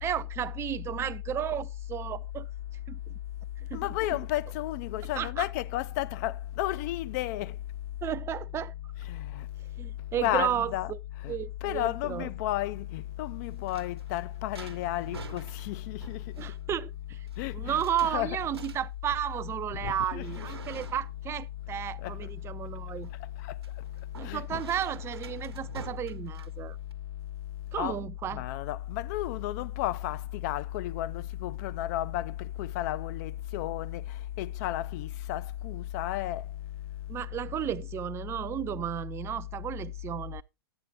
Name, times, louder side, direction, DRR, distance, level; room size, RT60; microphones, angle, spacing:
voice 1, 0.0-2.5 2.9-3.1 3.7-4.2 5.2-5.5 8.0-8.7 9.8-11.0 11.3-12.3 16.4-17.3 17.5-23.1 24.2-26.8 27.7-28.4 37.1-40.4, right 10 dB, 20° right, 0.4 m, -33 dB
voice 2, 3.7-7.5 9.1-9.5 10.2-10.9 11.2-11.3 11.6-16.2 17.4-18.4 19.8-20.5 22.0-22.2 23.4-23.5 24.2-24.6 27.8-28.0 28.3-34.0 34.4-36.4, left 14 dB, 45° left, 0.4 m, -32 dB
sound 1, 13.3-26.9, right 4 dB, 90° right, 1.0 m, -48 dB
10.0 x 8.8 x 3.0 m
hypercardioid pair, 115°, 13 cm